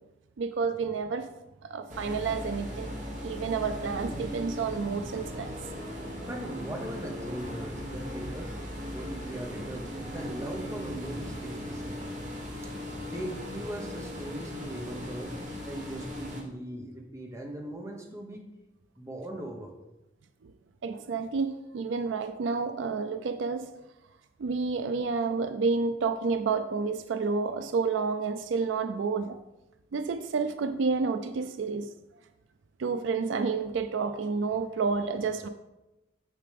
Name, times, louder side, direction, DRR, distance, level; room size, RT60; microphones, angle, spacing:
voice 1, 0.4-1.3 1.6-3.0 3.2-5.5 20.8-23.7 24.4-29.4 29.9-31.9 32.8-35.5, right 4 dB, 75° right, 9 dB, 0.4 m, -30 dB
sound 1, 1.9-16.4, equal, 40° right, 1.3 m, -38 dB
voice 2, 6.1-8.5 8.9-12.0 12.6-12.7 13.1-15.3 15.7-18.4 19.0-19.7, right 1 dB, 15° right, 1 dB, 1.0 m, -39 dB
6.8 x 6.6 x 3.4 m, 0.97 s
head